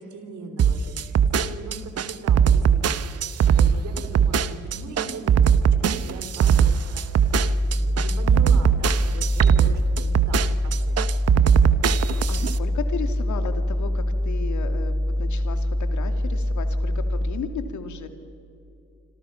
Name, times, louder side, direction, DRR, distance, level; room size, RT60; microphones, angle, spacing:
voice 1, 0.0-7.3 7.7-11.2, right 3 dB, 70° right, 7 dB, 3.8 m, -40 dB
sound 1, 0.6-12.6, right 8 dB, 55° right, 1.1 m, -19 dB
sound 2, 7.2-17.3, left 1 dB, 5° right, 3.1 m, -25 dB
voice 2, 11.9-18.1, left 6 dB, 70° left, 8 dB, 2.5 m, -35 dB
27.0 x 26.5 x 5.8 m, 2.6 s
cardioid pair, 90°, 30 cm